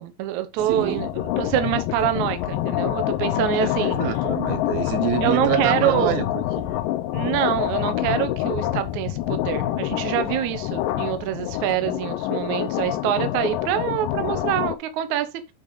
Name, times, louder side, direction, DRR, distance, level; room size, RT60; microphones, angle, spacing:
voice 1, 0.0-4.0 5.2-6.2 7.1-15.3, right 12 dB, 70° right, 2.0 m, -25 dB
lastra percussion thunder, 0.6-14.8, left 14 dB, 80° left, 2.3 m, -26 dB
voice 2, 0.7-1.1 3.6-6.8, right 11 dB, 90° right, 2.7 m, -27 dB
8.8 x 4.8 x 3.9 m
omnidirectional pair, 4.1 m